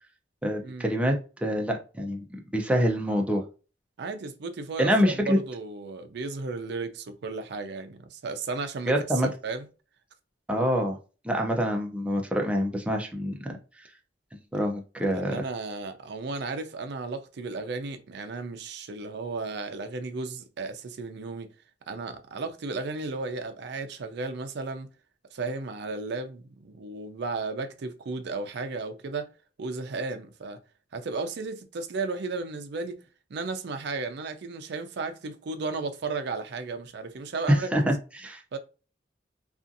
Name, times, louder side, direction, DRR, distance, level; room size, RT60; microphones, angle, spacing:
voice 1, 0.4-2.3 2.5-3.4 4.8-5.4 8.9-9.3 10.5-11.0 11.2-13.5 14.5-15.3 37.5-38.6, equal, 5° right, 0.5 m, -26 dB
voice 2, 4.0-8.9 9.2-9.7 15.1-21.5 21.9-24.9 25.3-29.3 29.6-30.6 30.9-33.0 33.3-37.7 38.5-38.6, right 3 dB, 65° right, 0.4 m, -34 dB
2.6 x 2.4 x 2.5 m
head